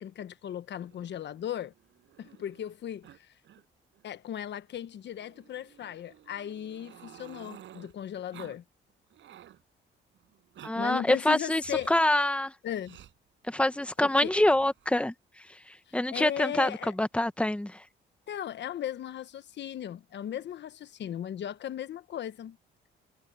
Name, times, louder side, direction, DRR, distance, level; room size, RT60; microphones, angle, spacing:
voice 1, 0.0-1.7 2.2-3.3 4.0-8.6 10.7-11.9 12.6-13.0 14.0-14.3 16.1-16.9 18.3-22.6, left 10 dB, 65° left, 1.2 m, -37 dB
Growling, 0.9-2.7 3.0-3.2 3.4-3.6 3.9-4.0 5.1-7.9 8.3-8.6 8.9-9.6 10.3-10.7 11.6-12.0 12.8-13.1 14.2-14.9, right 11 dB, 70° right, 6.1 m, -52 dB
voice 2, 10.6-12.5 13.5-15.1 15.5-17.8, left 1 dB, 5° left, 1.2 m, -26 dB
cardioid pair, 90°, 20 cm